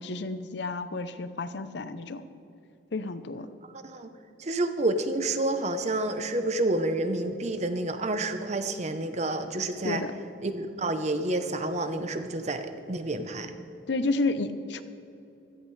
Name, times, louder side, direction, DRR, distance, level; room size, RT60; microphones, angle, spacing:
voice 1, 0.0-2.2 2.9-3.5 9.8-10.1 13.9-14.8, left 3 dB, 60° left, 12 dB, 0.6 m, -31 dB
voice 2, 3.7-4.1 4.4-10.0 10.4-13.5, right 2 dB, 35° right, 9 dB, 0.8 m, -29 dB
16.5 x 14.5 x 3.3 m, 2.7 s
head